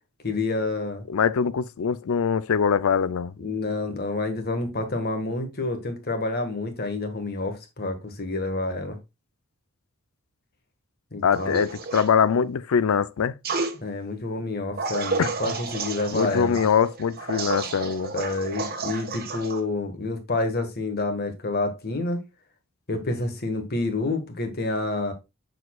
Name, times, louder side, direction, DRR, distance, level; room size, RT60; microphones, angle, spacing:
voice 1, 0.2-1.0 3.4-9.0 11.1-11.6 13.8-16.6 18.1-22.2 22.9-25.1, left 2 dB, 50° left, 1.5 m, -28 dB
voice 2, 1.1-3.3 11.2-13.4 15.2-15.3 16.1-18.1, left 6 dB, 90° left, 0.5 m, -23 dB
sound 1, 11.3-12.1 13.4-13.7 14.8-19.6, right 4 dB, 45° right, 1.1 m, -31 dB
6.7 x 6.5 x 2.3 m
head